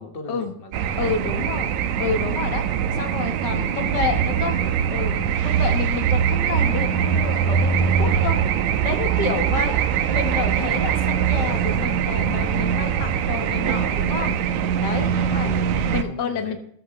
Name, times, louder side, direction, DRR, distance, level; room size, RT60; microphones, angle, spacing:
voice 1, 0.0-1.5 3.2-3.9 4.3-5.4 15.0-16.6, left 3 dB, 30° left, 4 dB, 1.1 m, -39 dB
sound 1, 0.7-16.0, right 8 dB, 75° right, 2.1 m, -22 dB
voice 2, 1.0-1.7 2.0-2.7 2.9-4.6 4.9-5.2 5.4-9.8 10.1-14.4 14.8-15.5 15.9-16.6, left 6 dB, 50° left, 6 dB, 1.3 m, -29 dB
13.5 x 13.5 x 3.2 m, 0.71 s
omnidirectional pair, 3.7 m